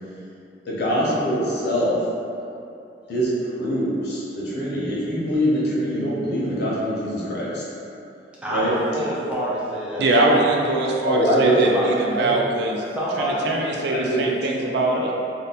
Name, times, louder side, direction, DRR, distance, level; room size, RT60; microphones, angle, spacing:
voice 1, 0.7-2.0 3.1-3.3 3.6-7.6 8.5-8.7 11.0-11.7 12.1-12.4 13.9-14.3, equal, 60° left, -7 dB, 0.8 m, -23 dB
voice 2, 8.4-10.6 11.2-11.9 12.9-13.6, equal, 5° right, -8 dB, 0.5 m, -27 dB
voice 3, 10.0-12.8 13.2-15.1, right 2 dB, 65° right, -1 dB, 0.4 m, -22 dB
2.7 x 2.1 x 4.0 m, 2.7 s
head